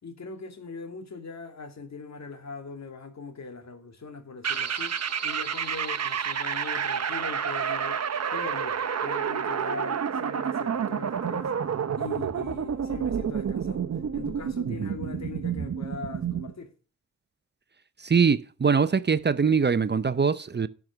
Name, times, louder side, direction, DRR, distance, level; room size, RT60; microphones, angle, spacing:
voice 1, 0.0-5.0 5.2-11.5 11.9-16.7, left 4 dB, 60° left, 2.4 m, -41 dB
sound 1, 4.4-11.8, right 3 dB, 15° right, 5.0 m, -53 dB
sound 2, 4.4-16.5, right 7 dB, 55° right, 1.0 m, -29 dB
voice 2, 18.0-20.7, right 6 dB, 35° right, 0.7 m, -22 dB
12.0 x 6.1 x 6.3 m
cardioid pair, 50°, 31 cm